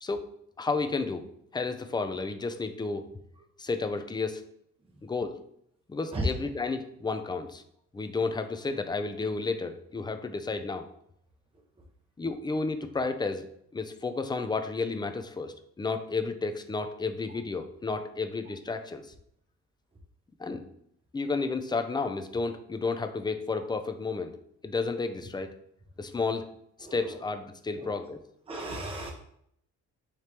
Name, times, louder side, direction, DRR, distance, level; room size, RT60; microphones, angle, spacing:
voice 1, 0.6-1.2 1.5-3.0 3.6-4.4 5.0-5.3 5.9-7.6 7.9-10.9 12.2-13.4 13.7-19.0 20.4-20.6 21.1-24.3 24.6-25.5 26.0-26.5 26.9-28.2, left 4 dB, 15° left, 7 dB, 0.4 m, -31 dB
voice 2, 26.8-27.2 27.7-27.9 28.5-29.1, right 2 dB, 20° right, 1 dB, 0.7 m, -36 dB
5.0 x 3.1 x 2.9 m, 0.71 s
cardioid pair, 90°, 30 cm